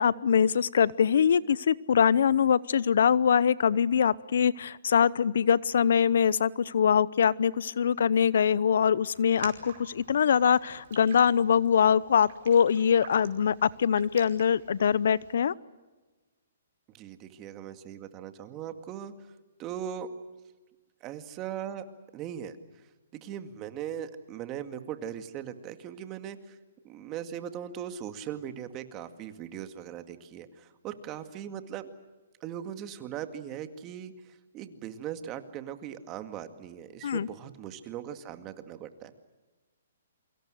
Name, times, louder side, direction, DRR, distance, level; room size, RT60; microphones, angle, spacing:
voice 1, 0.0-15.5 37.0-37.3, left 7 dB, 70° left, 21 dB, 0.7 m, -23 dB
Raindrop, 9.1-15.3, right 8 dB, 55° right, 5.1 m, -49 dB
voice 2, 16.9-19.3 19.6-20.1 21.0-21.8 22.1-22.8 23.1-26.6 26.8-31.9 32.4-39.2, right 9 dB, 25° right, 8 dB, 2.1 m, -39 dB
28.0 x 24.5 x 6.4 m, 1.2 s
hypercardioid pair, 145°, 0 cm